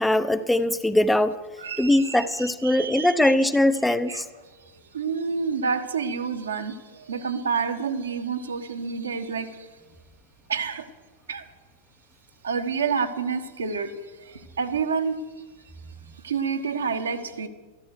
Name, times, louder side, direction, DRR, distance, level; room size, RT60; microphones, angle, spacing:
voice 1, 0.0-1.4 1.8-4.3, left 1 dB, 5° left, 0.7 m, -21 dB
voice 2, 1.6-3.3 3.8-9.7 10.5-10.9 11.3-11.5 12.4-15.3 16.2-17.5, right 5 dB, 70° right, 1.2 m, -29 dB
14.0 x 13.5 x 6.5 m
figure-of-eight pair, 90°, 0 cm